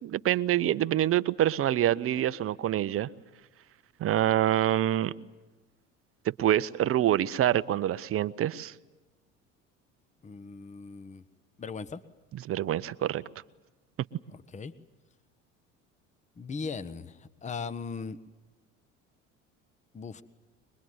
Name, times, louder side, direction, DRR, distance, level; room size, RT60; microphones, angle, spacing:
voice 1, 0.0-3.1 4.0-5.1 6.2-8.7 12.5-13.2, right 12 dB, 35° right, 14 dB, 0.8 m, -26 dB
voice 2, 10.2-11.2 11.6-12.0 14.3-14.7 16.4-18.2 19.9-20.2, left 5 dB, 20° left, 13 dB, 1.0 m, -38 dB
23.0 x 21.5 x 9.5 m, 1.2 s
figure-of-eight pair, 65°, 38 cm